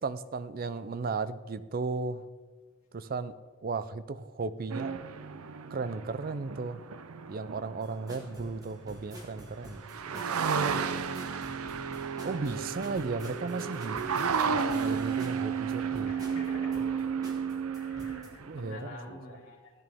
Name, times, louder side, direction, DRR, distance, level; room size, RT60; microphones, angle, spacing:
voice 1, 0.0-2.2 2.9-3.3 3.6-4.9 5.7-6.8 7.3-10.4 12.2-14.3 14.8-16.4 18.4-19.4, right 4 dB, 45° right, 14 dB, 0.4 m, -35 dB
sound 1, 4.7-8.8 9.4-9.5 9.6-18.7, right 6 dB, 85° right, 0.6 m, -33 dB
sound 2, 7.8-18.3, right 1 dB, 15° right, 1.7 m, -48 dB
voice 2, 12.7-13.0 16.0-17.0 17.8-19.7, left 2 dB, 65° left, -4 dB, 2.5 m, -47 dB
14.0 x 9.1 x 3.5 m, 1.4 s
head